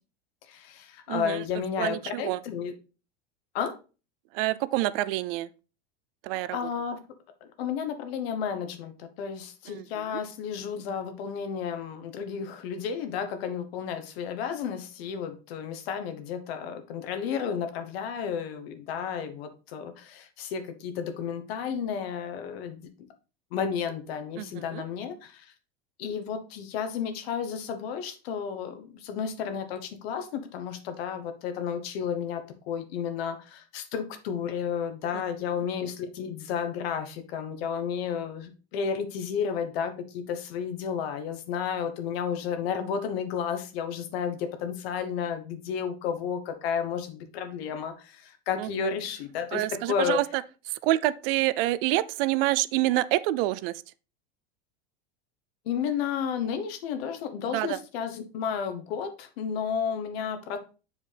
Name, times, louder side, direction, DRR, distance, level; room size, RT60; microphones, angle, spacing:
voice 1, 0.5-2.7 3.5-3.7 6.5-7.0 7.4-22.8 23.5-25.4 26.0-50.2 55.6-60.6, left 7 dB, 75° left, 1.2 m, -32 dB
voice 2, 1.1-1.4 1.8-2.4 4.3-5.5 6.2-6.5 9.7-9.8 10.1-10.2 24.4-24.8 48.6-48.9 49.5-50.4 50.8-53.7 57.5-57.8, right 16 dB, 65° right, 0.5 m, -27 dB
7.7 x 4.6 x 3.4 m
supercardioid pair, 125°, 30 cm